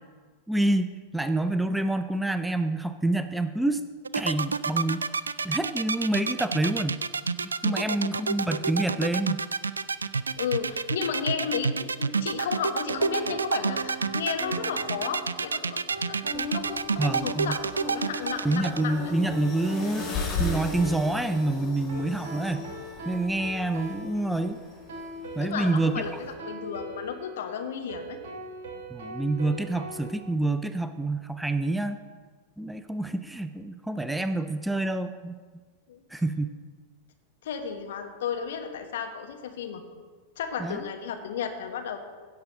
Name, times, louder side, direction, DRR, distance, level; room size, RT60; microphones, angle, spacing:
voice 1, 0.5-3.8 4.1-5.1 5.4-7.0 7.4-9.4 17.0-17.6 18.4-20.1 20.4-22.7 23.1-24.6 25.4-26.0 28.9-32.0 32.6-35.4 36.1-36.6 40.6-40.9, right 2 dB, 5° right, 10 dB, 0.4 m, -27 dB
sound 1, 4.0-18.8, right 5 dB, 75° right, 0.3 m, -28 dB
voice 2, 10.4-15.8 16.1-19.1 25.4-28.2 35.9-36.0 37.4-39.8 40.4-42.0, left 7 dB, 60° left, 5 dB, 1.1 m, -33 dB
sound 2, 12.9-30.1, right 1 dB, 55° right, 1.8 m, -40 dB
sound 3, 16.3-26.3, left 3 dB, 25° left, 2.0 m, -38 dB
16.5 x 6.4 x 3.9 m, 1.5 s
figure-of-eight pair, 90°, 0 cm